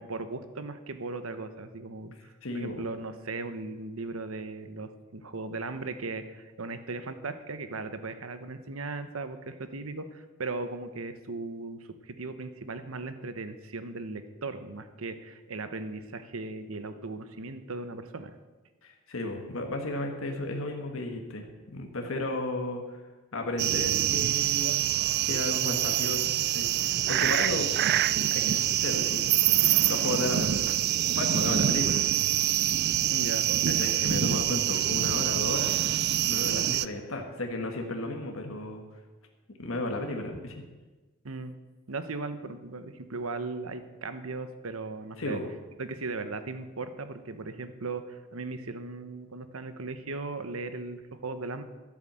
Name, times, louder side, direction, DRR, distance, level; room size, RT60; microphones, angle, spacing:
voice 1, 0.0-18.3 33.1-33.5 41.2-41.5 41.9-45.4 45.8-51.6, right 3 dB, 90° right, 10 dB, 1.0 m, -37 dB
voice 2, 2.4-2.8 18.8-23.0 23.3-24.8 25.2-27.7 28.3-29.3 29.9-30.9 31.1-32.0 33.7-35.7 36.2-38.8 39.5-40.6 45.2-45.5, left 2 dB, 75° left, 2 dB, 1.6 m, -34 dB
sound 1, 23.6-36.9, right 12 dB, 55° right, 0.4 m, -25 dB
12.5 x 8.3 x 7.6 m, 1.3 s
head